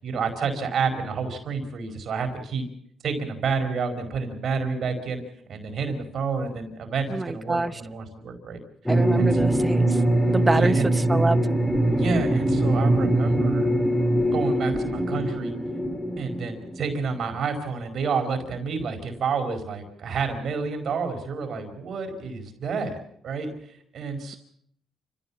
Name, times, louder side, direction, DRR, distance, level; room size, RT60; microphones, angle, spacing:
voice 1, 0.0-2.7 3.0-5.2 5.5-8.6 9.1-9.3 10.5-10.9 11.9-13.7 14.3-15.5 16.2-23.0 23.2-23.5 23.9-24.4, right 5 dB, 60° right, 6 dB, 4.9 m, -29 dB
voice 2, 7.1-7.7 8.9-10.0 10.3-11.4, right 2 dB, 20° right, 13 dB, 1.0 m, -25 dB
sound 1, 8.9-17.1, right 1 dB, 10° left, 3.7 m, -22 dB
29.0 x 15.5 x 7.3 m, 0.69 s
cardioid pair, 90°, 0 cm